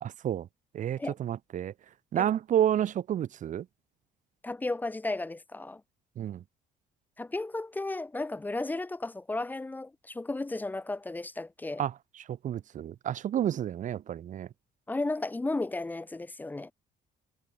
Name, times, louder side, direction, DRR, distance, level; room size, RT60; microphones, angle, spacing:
voice 1, 0.0-0.5 0.7-1.7 2.1-3.7 6.2-6.4 11.8-11.9 12.3-14.5, right 10 dB, 50° right, 0.8 m, -30 dB
voice 2, 4.4-5.8 7.2-11.8 14.9-16.7, left 2 dB, 10° left, 0.4 m, -34 dB
cardioid pair, 110°, 17 cm